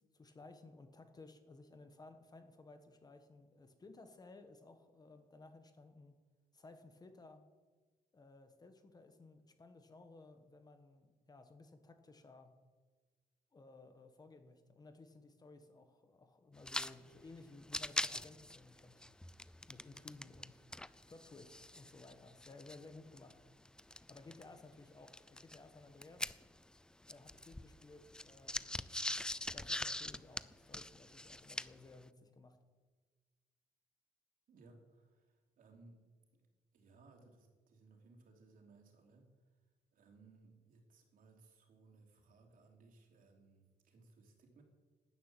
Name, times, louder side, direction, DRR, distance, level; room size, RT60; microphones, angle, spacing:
voice 1, 0.1-6.2 6.5-7.4 8.1-12.5 13.5-19.0 19.7-20.7 21.1-23.4 23.9-26.3 27.1-28.8 29.5-32.6, left 3 dB, 25° left, 7 dB, 1.3 m, -57 dB
sound 1, 16.6-16.9 17.2-17.3 17.6-20.5 20.7-24.4 25.1-26.8 27.0-31.9, left 1 dB, 5° left, 0.3 m, -42 dB
voice 2, 34.5-36.1 36.3-36.5 36.7-39.6 39.9-44.6, right 3 dB, 60° right, 2 dB, 3.5 m, -63 dB
13.0 x 11.0 x 9.2 m, 1.4 s
cardioid pair, 155°, 16 cm